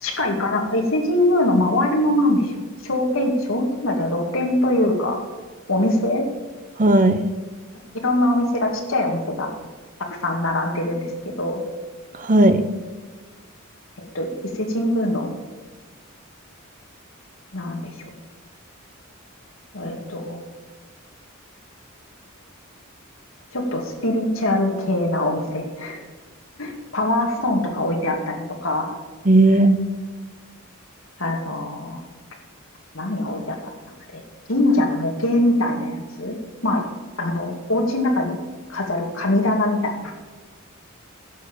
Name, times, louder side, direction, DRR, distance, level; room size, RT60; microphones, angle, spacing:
voice 1, 0.0-2.6 2.8-5.2 5.7-6.3 8.0-9.5 10.1-11.6 14.0-14.3 14.5-15.3 17.5-18.1 19.7-20.4 23.5-26.0 26.6-28.9 31.2-32.0 32.9-33.5 34.1-34.2 34.5-36.4 36.6-36.9 37.2-38.4 38.7-40.1, left 1 dB, 70° left, 2 dB, 2.3 m, -22 dB
voice 2, 6.8-7.2 12.1-12.7 29.2-29.8, right 1 dB, 40° right, 9 dB, 0.9 m, -15 dB
11.0 x 7.4 x 7.2 m, 1.4 s
head